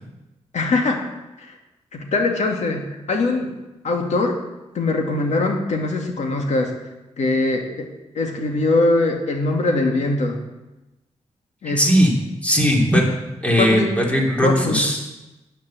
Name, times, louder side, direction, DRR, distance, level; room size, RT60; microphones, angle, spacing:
voice 1, 0.5-1.0 1.4-1.6 1.9-3.5 3.8-4.4 4.7-6.7 7.2-7.9 8.1-10.4 11.6-11.8 13.6-13.9 14.4-14.8, left 2 dB, 70° left, 2 dB, 2.3 m, -21 dB
voice 2, 11.7-12.1 12.4-13.1 13.4-15.0, equal, 10° left, 0 dB, 3.0 m, -18 dB
10.0 x 9.5 x 7.7 m, 1.0 s
wide cardioid pair, 110°, 12 cm